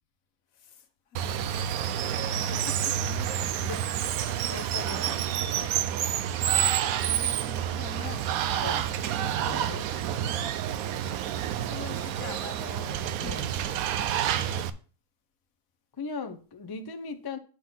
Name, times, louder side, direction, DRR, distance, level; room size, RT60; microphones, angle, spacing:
voice 1, 0.5-2.3 2.9-3.3 4.3-5.2 6.6-6.7 7.0-9.3 11.6-13.9, left 6 dB, 80° left, 1.4 m, -46 dB
Water, 1.2-14.7, right 10 dB, 90° right, 1.1 m, -29 dB
voice 2, 2.4-3.3 3.6-3.9 4.2-5.3 5.5-5.7 8.6-8.8 9.3-9.9 13.2-13.4 16.0-17.4, left 4 dB, 35° left, 0.3 m, -39 dB
8.6 x 3.9 x 5.7 m
omnidirectional pair, 1.4 m